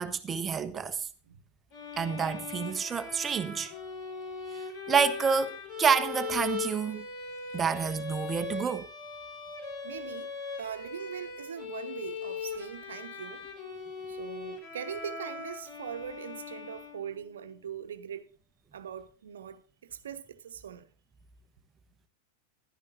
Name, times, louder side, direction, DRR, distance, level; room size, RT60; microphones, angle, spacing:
voice 1, 0.0-1.1 2.0-3.7 4.5-7.0 7.5-8.9, right 6 dB, 20° right, 1.2 m, -29 dB
sound 1, 1.7-17.4, left 5 dB, 45° left, 3.9 m, -40 dB
voice 2, 9.8-10.3 10.6-13.4 14.1-18.3 18.7-20.8, right 8 dB, 65° right, 1.2 m, -41 dB
14.5 x 12.5 x 2.6 m
figure-of-eight pair, 90°, 0 cm